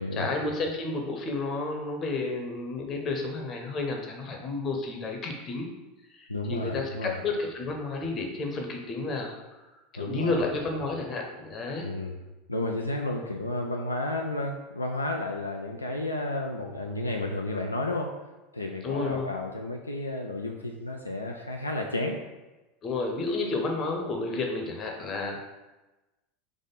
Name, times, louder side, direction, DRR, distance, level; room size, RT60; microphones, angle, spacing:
voice 1, 0.0-5.7 6.1-11.9 18.8-19.3 22.8-25.4, left 3 dB, 35° left, 3 dB, 0.9 m, -31 dB
voice 2, 6.3-7.2 10.0-10.5 11.8-12.2 12.5-18.1 18.5-22.2, left 2 dB, 90° left, 1 dB, 0.4 m, -32 dB
3.5 x 3.5 x 4.0 m, 1.1 s
figure-of-eight pair, 80°, 0 cm